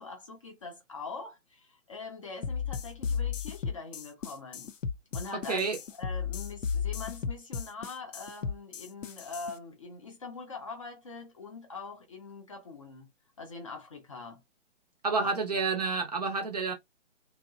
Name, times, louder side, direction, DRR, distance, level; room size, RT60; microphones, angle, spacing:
voice 1, 0.0-4.7 5.1-5.6 6.0-13.1 13.4-14.4 15.2-15.3, left 4 dB, 25° left, 0.5 m, -43 dB
sound 1, 2.4-9.5, left 6 dB, 80° left, 0.5 m, -34 dB
voice 2, 5.3-5.8 15.0-16.7, right 4 dB, 35° right, 0.5 m, -29 dB
2.8 x 2.1 x 2.2 m
figure-of-eight pair, 135°, 37 cm